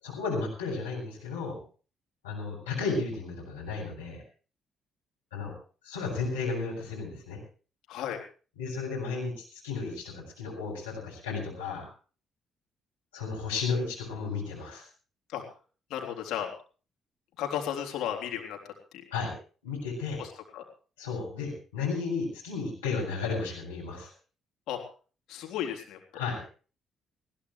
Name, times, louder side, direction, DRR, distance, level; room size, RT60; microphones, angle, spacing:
voice 1, 0.0-1.6 2.2-4.2 5.3-5.6 5.8-7.4 8.6-11.9 13.1-14.9 19.1-19.3 19.6-20.2 21.0-24.1 26.1-26.4, left 4 dB, 90° left, -2 dB, 7.3 m, -33 dB
voice 2, 7.9-8.2 15.3-15.4 15.9-16.5 17.4-18.6 20.2-20.6 24.7-24.8 25.3-26.2, left 10 dB, 70° left, 2 dB, 3.7 m, -34 dB
20.5 x 16.0 x 3.3 m, 0.38 s
hypercardioid pair, 45°, 0 cm